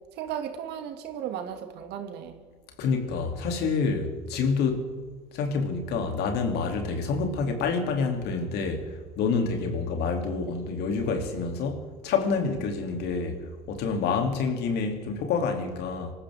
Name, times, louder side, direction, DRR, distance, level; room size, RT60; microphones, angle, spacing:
voice 1, 0.2-2.4, right 9 dB, 60° right, 2.4 m, -35 dB
voice 2, 2.8-4.9 5.3-13.4 13.7-16.1, left 4 dB, 60° left, 3.1 m, -28 dB
26.0 x 14.5 x 3.7 m
hypercardioid pair, 70°, 19 cm